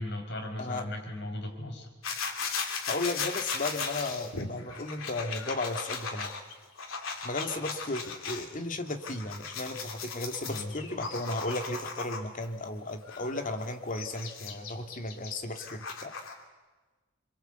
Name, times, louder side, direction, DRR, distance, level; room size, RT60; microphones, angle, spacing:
voice 1, 0.0-1.9 10.5-10.7, left 1 dB, 60° left, 3 dB, 4.8 m, -37 dB
sound 1, 2.0-8.4 8.8-12.5 13.0-16.4, left 5 dB, 85° left, 3.0 m, -37 dB
voice 2, 2.8-6.3 7.2-16.1, left 2 dB, 40° left, 5 dB, 2.3 m, -35 dB
27.0 x 23.5 x 8.2 m, 1.3 s
head